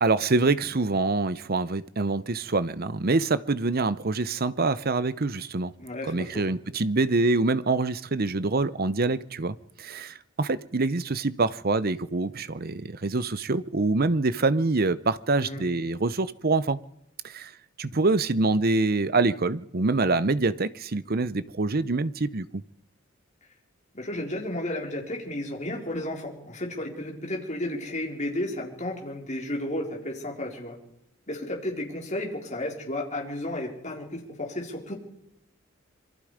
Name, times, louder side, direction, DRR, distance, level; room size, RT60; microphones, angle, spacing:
voice 1, 0.0-5.7 6.0-16.8 17.2-17.5 17.8-22.6, right 3 dB, 45° right, 0.8 m, -25 dB
voice 2, 5.8-6.5 15.3-15.7 23.9-30.8 31.3-34.9, left 1 dB, 35° left, 4.7 m, -33 dB
27.0 x 23.5 x 5.1 m
head